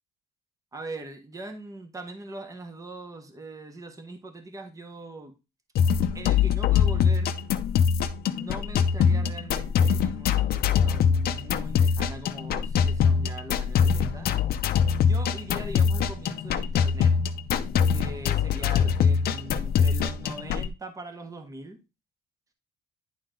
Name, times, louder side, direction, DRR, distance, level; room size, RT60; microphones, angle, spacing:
voice 1, 0.7-5.3 6.1-7.3 8.2-14.3 15.0-17.1 17.9-21.8, right 2 dB, 20° right, 5 dB, 1.4 m, -41 dB
sound 1, 5.8-20.7, left 7 dB, 65° left, 0.7 m, -23 dB
10.5 x 3.8 x 3.9 m, 0.27 s
cardioid pair, 120°, 17 cm